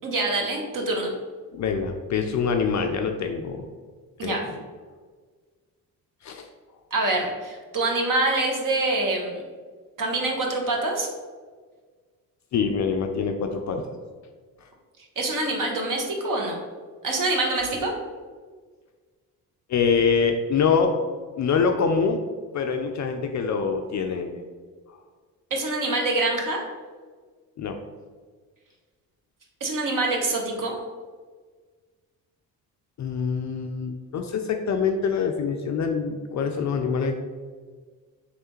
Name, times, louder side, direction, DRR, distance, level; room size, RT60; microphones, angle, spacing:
voice 1, 0.0-1.1 4.2-4.4 6.9-9.3 10.0-11.1 15.2-16.6 17.0-17.9 25.5-26.6 29.6-30.8, right 2 dB, 45° right, 0 dB, 1.1 m, -25 dB
voice 2, 1.5-3.7 4.2-4.4 6.2-6.5 12.5-13.9 19.7-20.9 21.4-22.2 22.5-24.4 27.6-27.8 33.0-37.1, left 5 dB, 40° left, 5 dB, 0.4 m, -25 dB
4.1 x 3.2 x 3.0 m, 1.5 s
hypercardioid pair, 45°, 46 cm